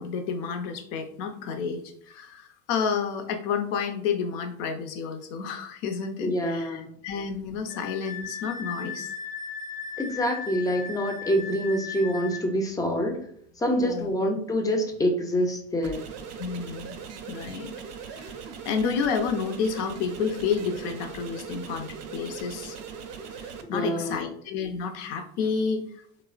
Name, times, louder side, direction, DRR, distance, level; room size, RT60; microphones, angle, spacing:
voice 1, 0.0-9.1 13.8-14.1 16.4-17.0 17.3-17.8 18.1-18.4 18.6-22.8 23.4-26.0, left 6 dB, 70° left, 7 dB, 0.6 m, -30 dB
voice 2, 6.2-6.9 10.0-13.2 13.6-16.0 23.7-24.3, equal, 10° left, 3 dB, 0.4 m, -26 dB
Wind instrument woodwind instrument, 7.7-12.5, left 5 dB, 90° left, 0.9 m, -37 dB
sound 1, 15.8-23.6, right 6 dB, 50° right, 0.4 m, -40 dB
3.1 x 2.0 x 2.3 m, 0.63 s
supercardioid pair, 105°, 34 cm